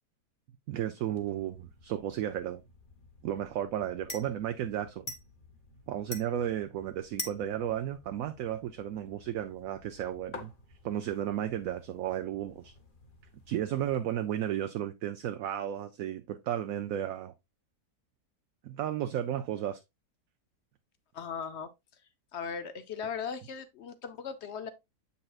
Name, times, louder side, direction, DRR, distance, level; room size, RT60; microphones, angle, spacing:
voice 1, 0.7-2.6 3.2-5.1 5.9-10.5 10.8-12.7 13.5-17.3 18.6-19.8, right 11 dB, 70° right, 0.9 m, -33 dB
sound 1, 1.2-14.0, left 2 dB, 35° left, 1.2 m, -48 dB
voice 2, 21.1-21.7 22.3-24.7, left 6 dB, 55° left, 0.8 m, -38 dB
7.7 x 5.5 x 2.4 m
omnidirectional pair, 1.7 m